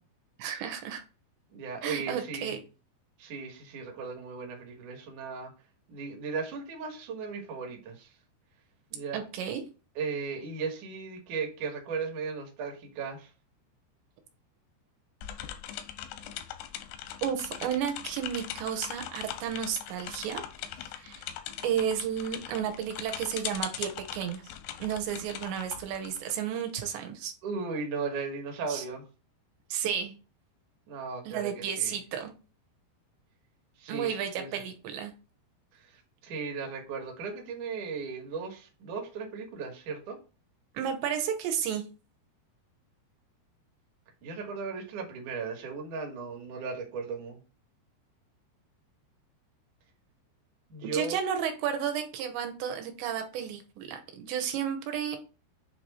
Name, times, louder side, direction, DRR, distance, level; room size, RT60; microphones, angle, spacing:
voice 1, 0.4-1.0 1.8-2.6 9.1-9.6 17.2-20.4 21.0-21.2 21.6-24.4 24.8-27.3 28.7-28.8 29.7-30.2 31.3-32.3 33.9-35.1 40.7-41.8 50.8-55.2, right 8 dB, 80° right, 5 dB, 3.1 m, -32 dB
voice 2, 1.5-2.5 3.2-5.5 5.9-8.1 8.9-9.2 10.0-13.3 27.4-29.0 30.9-31.9 33.8-34.6 36.2-40.2 44.2-47.4 50.7-51.2, right 5 dB, 60° right, 2 dB, 2.4 m, -36 dB
sound 1, 15.2-26.8, left 11 dB, 85° left, 2.8 m, -40 dB
8.2 x 3.1 x 4.1 m, 0.34 s
omnidirectional pair, 5.0 m